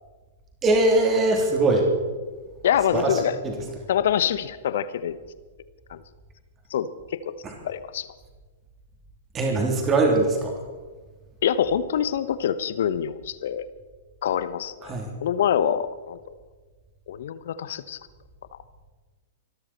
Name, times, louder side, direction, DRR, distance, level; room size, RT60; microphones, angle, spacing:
voice 1, 0.6-1.9 2.9-3.1 3.4-3.5 9.3-10.5 14.9-15.1, right 2 dB, 25° right, 1 dB, 3.4 m, -21 dB
voice 2, 2.6-3.4 3.9-5.2 5.9-6.0 6.7-7.3 7.6-8.1 11.4-13.7 14.2-16.2 17.1-18.0, left 9 dB, 60° left, 14 dB, 0.9 m, -25 dB
25.0 x 13.0 x 4.4 m, 1.4 s
figure-of-eight pair, 105°, 0 cm